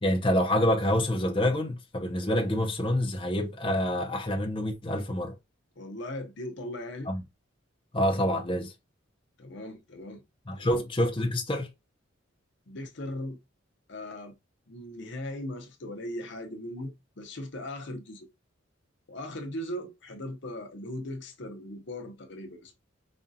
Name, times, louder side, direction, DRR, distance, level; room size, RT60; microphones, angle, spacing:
voice 1, 0.0-5.3 7.1-7.2 7.9-8.7 10.5-11.7, left 1 dB, 25° left, 0.7 m, -27 dB
voice 2, 5.8-7.1 9.4-10.2 10.6-10.9 12.7-13.4 13.9-14.4 14.7-18.3 19.1-22.7, left 1 dB, 60° left, 0.8 m, -38 dB
5.2 x 2.3 x 2.7 m
head